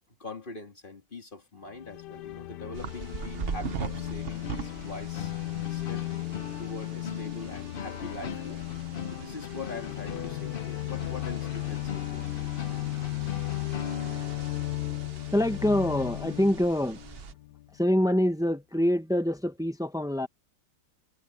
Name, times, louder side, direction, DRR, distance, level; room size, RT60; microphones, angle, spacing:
voice 1, 0.2-5.3 5.7-6.1 6.6-8.7 9.1-12.3, left 2 dB, 30° left, 2.7 m, -43 dB
sound 1, 1.7-17.8, left 18 dB, 75° left, 1.2 m, -36 dB
sound 2, 2.7-17.3, right 6 dB, 45° right, 0.8 m, -42 dB
sound 3, 4.3-15.1, left 6 dB, 55° left, 0.6 m, -40 dB
voice 2, 15.3-17.0 17.7-20.3, left 1 dB, 5° right, 0.5 m, -25 dB
omnidirectional pair, 1.9 m